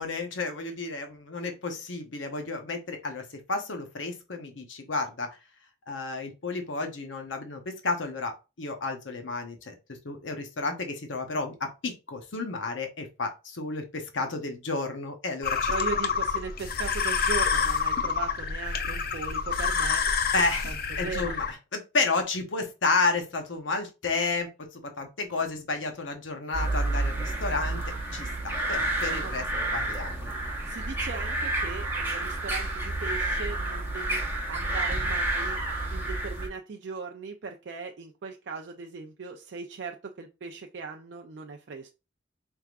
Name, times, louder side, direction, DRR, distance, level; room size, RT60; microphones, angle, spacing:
voice 1, 0.0-3.2 3.5-5.3 5.9-9.7 10.0-15.7 20.3-20.7 21.0-27.8 28.1-30.3, left 3 dB, 85° left, 0.8 m, -31 dB
sound 1, 15.4-21.5, left 6 dB, 50° left, 0.5 m, -28 dB
voice 2, 15.7-20.1 20.6-21.4 29.2-29.7 30.7-35.6 35.9-41.9, right 4 dB, 65° right, 0.4 m, -38 dB
sound 2, 26.5-36.5, right 2 dB, 10° right, 0.8 m, -30 dB
4.6 x 3.5 x 2.4 m
head